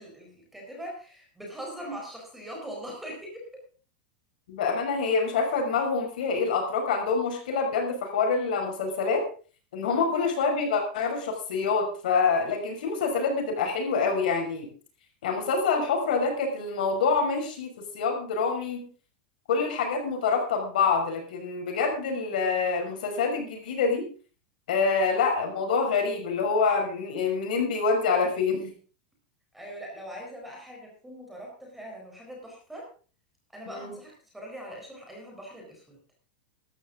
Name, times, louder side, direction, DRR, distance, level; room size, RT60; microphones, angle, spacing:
voice 1, 0.0-3.6 9.9-10.1 24.7-24.8 29.5-32.9 33.5-36.0, equal, 5° right, -1 dB, 4.2 m, -41 dB
voice 2, 4.5-9.3 9.7-14.7 15.2-18.9 19.5-24.1 24.7-28.7 33.7-34.0, left 4 dB, 75° left, 3 dB, 5.7 m, -26 dB
15.0 x 13.0 x 3.8 m, 0.38 s
supercardioid pair, 175°, 5 cm